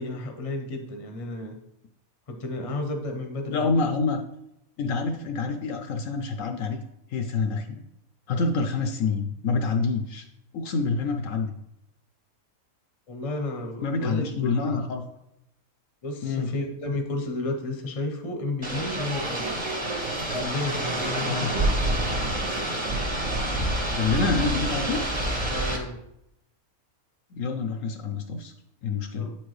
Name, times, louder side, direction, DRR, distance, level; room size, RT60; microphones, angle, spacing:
voice 1, 0.0-1.6 2.3-3.9 13.1-14.7 16.0-19.5 20.3-21.6 25.5-26.0 29.1-29.4, left 2 dB, 35° left, 3 dB, 0.6 m, -32 dB
voice 2, 3.5-4.2 4.8-6.8 7.1-7.8 8.3-10.3 10.5-11.5 13.8-15.0 16.2-16.5 21.2-21.5 23.4-25.0 27.3-28.5 28.8-29.3, left 4 dB, 70° left, 5 dB, 0.9 m, -27 dB
sound 1, 18.6-25.8, right 1 dB, 20° right, 0.9 m, -27 dB
8.4 x 4.4 x 3.1 m, 0.81 s
omnidirectional pair, 1.5 m